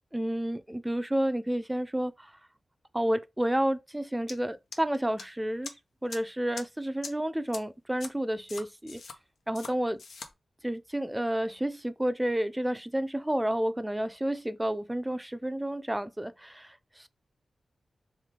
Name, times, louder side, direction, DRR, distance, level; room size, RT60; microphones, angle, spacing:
voice 1, 0.1-2.3 2.9-5.8 6.0-9.0 9.5-10.0 10.6-17.1, right 1 dB, 10° right, 0.4 m, -30 dB
sound 1, 4.3-4.4 4.7-5.2 5.6-5.7 6.1-6.2 6.5-6.6 7.0-7.1 7.5-7.6 8.0-8.1 8.5-9.1 9.5-9.7 10.0-10.3, left 4 dB, 85° left, 0.7 m, -41 dB
3.6 x 3.2 x 3.7 m
cardioid pair, 65°, 0 cm